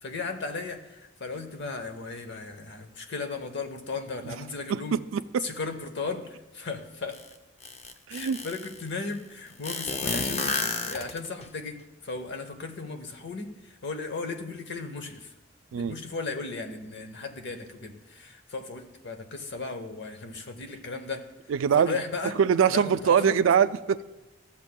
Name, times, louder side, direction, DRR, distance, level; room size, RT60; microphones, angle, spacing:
voice 1, 0.0-5.0 5.4-7.2 8.1-11.8 12.0-15.3 15.7-21.2 21.7-22.4 22.7-23.3, left 3 dB, 60° left, 7 dB, 0.9 m, -36 dB
voice 2, 4.7-5.4 8.1-8.4 15.7-15.9 21.5-22.0 22.4-24.0, right 7 dB, 70° right, 14 dB, 0.3 m, -23 dB
sound 1, 7.1-7.2 7.6-8.7 9.6-11.5, left 4 dB, 35° left, 0.5 m, -30 dB
14.0 x 7.2 x 2.2 m, 1.1 s
head